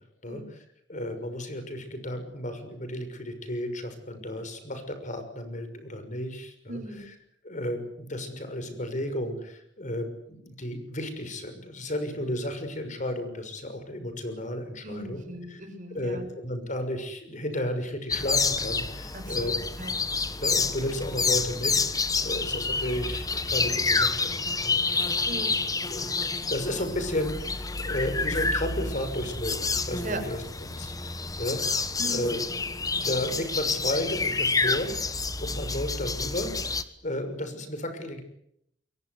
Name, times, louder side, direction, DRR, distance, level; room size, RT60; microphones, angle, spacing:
voice 1, 0.2-0.6 0.9-6.8 7.1-7.2 7.4-15.2 15.5-15.6 15.9-19.5 20.4-24.4 24.6-25.1 25.9-30.4 30.7-31.6 32.0-32.4 32.9-35.1 35.4-38.2, left 1 dB, 45° left, 8 dB, 6.2 m, -33 dB
voice 2, 6.7-7.1 14.8-16.3 19.1-19.9 25.3-25.6 30.0-30.2 32.0-32.3, right 1 dB, 45° right, 5 dB, 6.5 m, -38 dB
sound 1, 18.1-36.8, left 4 dB, 20° left, 1.5 m, -28 dB
27.0 x 23.0 x 8.2 m, 0.74 s
head